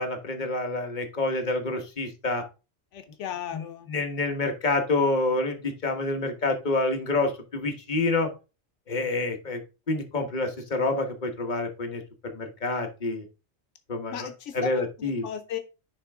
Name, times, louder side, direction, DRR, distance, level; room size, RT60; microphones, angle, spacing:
voice 1, 0.0-2.4 3.5-8.3 8.9-9.6 9.9-13.2 13.9-14.3 14.5-15.2, left 2 dB, 40° left, 4 dB, 1.4 m, -28 dB
voice 2, 2.9-3.9 14.1-15.6, left 10 dB, 80° left, 8 dB, 1.0 m, -36 dB
10.0 x 3.7 x 3.5 m, 0.30 s
omnidirectional pair, 1.2 m